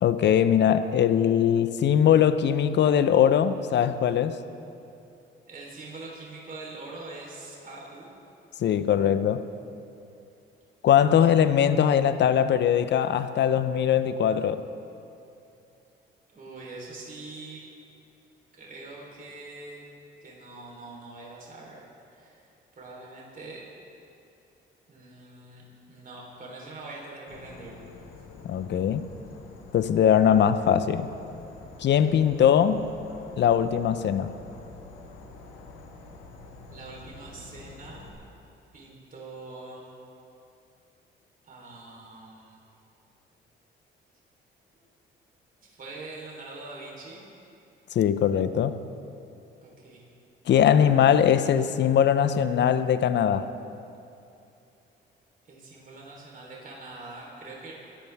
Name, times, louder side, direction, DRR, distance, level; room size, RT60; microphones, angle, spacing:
voice 1, 0.0-4.4 8.6-9.4 10.8-14.7 28.4-29.0 29.7-31.1 31.8-32.8 33.4-34.3 47.9-48.8 50.5-53.5, left 9 dB, 60° left, 12 dB, 0.7 m, -21 dB
voice 2, 5.5-8.1 16.3-17.6 18.6-19.8 20.2-22.4 22.8-23.6 24.9-27.8 36.7-38.1 38.7-39.9 41.4-42.6 44.7-44.8 45.6-47.2 49.6-50.1 55.5-57.7, right 2 dB, 45° right, -3 dB, 3.8 m, -43 dB
Insect / Frog, 27.3-38.1, left 3 dB, 85° left, 1.8 m, -47 dB
23.0 x 13.0 x 3.5 m, 2.7 s
cardioid pair, 90°, 20 cm